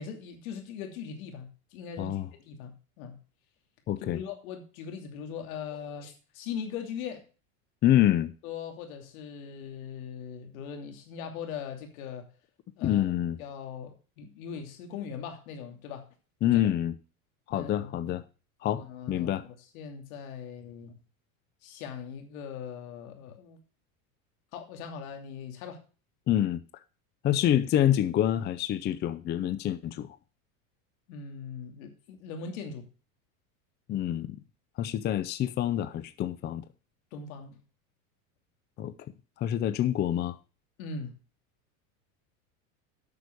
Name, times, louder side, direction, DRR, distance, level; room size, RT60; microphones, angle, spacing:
voice 1, 0.0-3.2 4.0-7.3 8.4-12.3 12.8-13.1 13.4-16.1 16.4-16.7 17.5-18.1 18.8-20.9 21.6-23.6 24.5-25.8 31.1-32.9 37.1-37.6 40.8-41.1, left 6 dB, 75° left, 2.8 m, -40 dB
voice 2, 3.9-4.2 7.8-8.3 12.8-13.4 16.4-16.9 17.5-18.2 18.6-19.4 26.3-26.6 27.2-30.2 33.9-34.4 34.8-36.6 38.8-38.9 39.4-40.4, left 11 dB, 25° left, 0.5 m, -26 dB
8.3 x 6.8 x 6.2 m
supercardioid pair, 130°, 42 cm